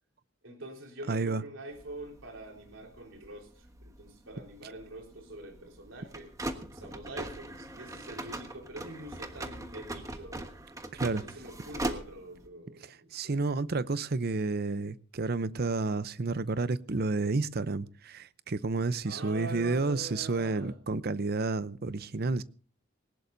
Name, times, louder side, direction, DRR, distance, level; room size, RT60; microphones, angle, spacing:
voice 1, 0.4-6.3 6.7-10.4 11.1-13.7 19.0-20.8, right 1 dB, 80° right, 4.0 m, -45 dB
voice 2, 1.1-1.4 10.9-11.2 12.8-22.4, right 3 dB, 50° right, 0.7 m, -30 dB
sound 1, 1.7-12.5, right 1 dB, 15° right, 1.3 m, -41 dB
20.0 x 18.5 x 2.6 m
head